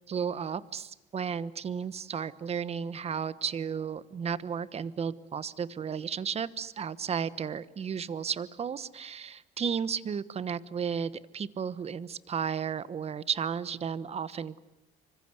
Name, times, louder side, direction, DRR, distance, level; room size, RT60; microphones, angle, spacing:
voice 1, 0.1-14.6, right 7 dB, 40° right, 16 dB, 1.1 m, -33 dB
27.0 x 24.5 x 8.2 m, 0.92 s
cardioid pair, 110°, 17 cm